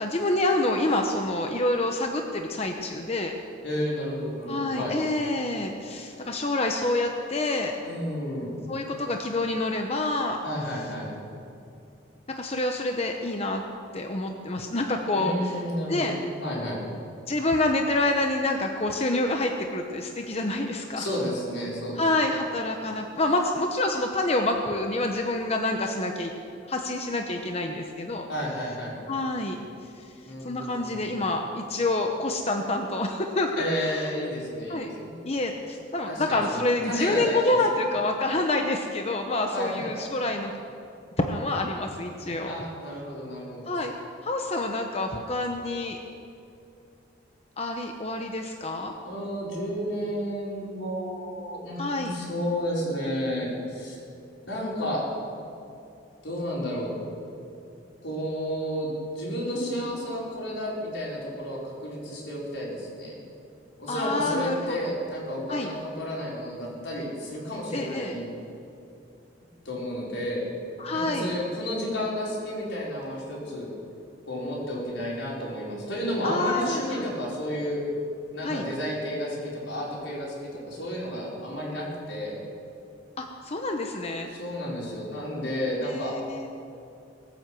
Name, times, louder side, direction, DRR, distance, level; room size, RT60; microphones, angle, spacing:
voice 1, 0.0-3.3 4.5-7.7 8.7-10.4 12.4-13.6 13.9-15.6 15.9-16.1 17.3-21.0 21.9-26.3 26.7-28.3 29.1-29.6 30.0-30.1 30.4-33.5 33.8-34.1 34.7-34.9 35.2-40.5 41.2-42.6 43.7-43.9 44.2-46.0 47.6-48.9 51.8-52.1 63.9-64.9 65.5-65.7 67.7-68.1 70.8-71.3 76.2-77.1 78.4-78.6 83.2-84.3 85.8-86.5, left 2 dB, 35° left, 3 dB, 0.9 m, -27 dB
voice 2, 3.6-5.0 7.8-8.5 10.4-11.1 15.1-16.2 16.4-16.8 21.0-22.0 28.3-29.0 30.2-31.2 33.5-35.1 36.1-37.6 39.5-40.2 42.4-43.8 49.0-54.0 54.5-55.0 56.2-56.9 58.0-63.2 63.8-68.3 69.7-70.4 70.9-73.7 74.3-77.8 78.3-82.4 84.4-86.2, equal, 85° left, -5 dB, 5.1 m, -31 dB
19.5 x 9.7 x 7.6 m, 2.7 s
head